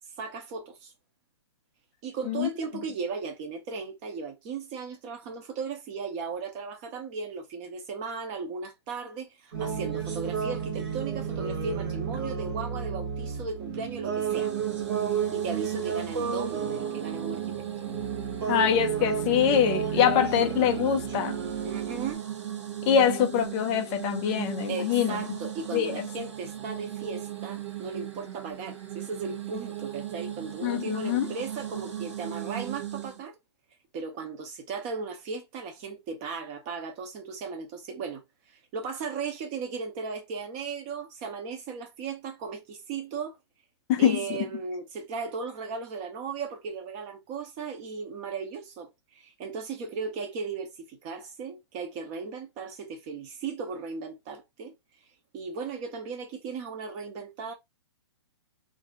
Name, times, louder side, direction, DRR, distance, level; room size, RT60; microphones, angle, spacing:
voice 1, 0.2-0.9 2.0-14.5 15.1-17.7 21.6-22.2 24.7-33.3 33.9-38.2 38.5-43.4 44.0-54.7 55.3-57.5, right 5 dB, 20° right, 0.6 m, -36 dB
sound 1, 9.5-22.1, right 7 dB, 50° right, 1.2 m, -32 dB
sound 2, 14.3-33.2, right 11 dB, 80° right, 0.9 m, -37 dB
voice 2, 18.5-21.4 22.9-25.2 25.7-26.1 30.6-31.3 43.9-44.2, left 9 dB, 15° left, 0.3 m, -24 dB
2.7 x 2.6 x 3.4 m
hypercardioid pair, 165°, 15 cm